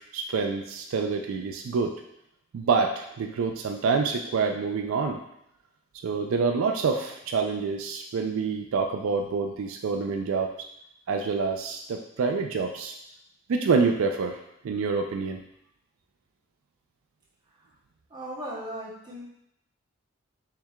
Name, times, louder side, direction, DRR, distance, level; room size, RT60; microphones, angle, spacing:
voice 1, 0.0-1.9 2.5-5.2 6.0-10.5 11.1-13.0 13.5-15.4, right 4 dB, 75° right, 4 dB, 0.3 m, -27 dB
voice 2, 18.1-19.2, right 1 dB, 20° right, -5 dB, 0.8 m, -37 dB
4.5 x 3.4 x 2.3 m, 0.80 s
head